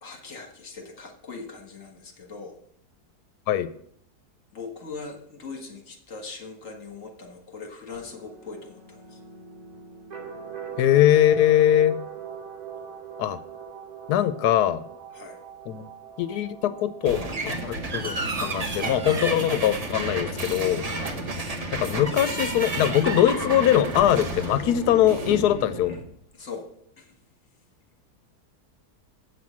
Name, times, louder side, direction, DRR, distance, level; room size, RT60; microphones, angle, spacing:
voice 1, 0.0-2.6 4.5-9.2 15.1-15.4 25.5-26.0 26.3-26.7 27.0-27.1, left 4 dB, 55° left, 4 dB, 1.7 m, -40 dB
sound 1, 7.9-21.5, right 6 dB, 70° right, 4.0 m, -43 dB
voice 2, 10.8-12.0 13.2-13.4 14.1-14.8 15.7-15.8 16.2-20.9 21.7-26.0, left 11 dB, 90° left, 13 dB, 1.1 m, -22 dB
sound 2, 17.0-25.4, right 3 dB, 30° right, 0.8 m, -32 dB
sound 3, 17.0-26.1, right 1 dB, 50° right, 1.9 m, -35 dB
8.2 x 6.1 x 7.3 m, 0.66 s
omnidirectional pair, 1.7 m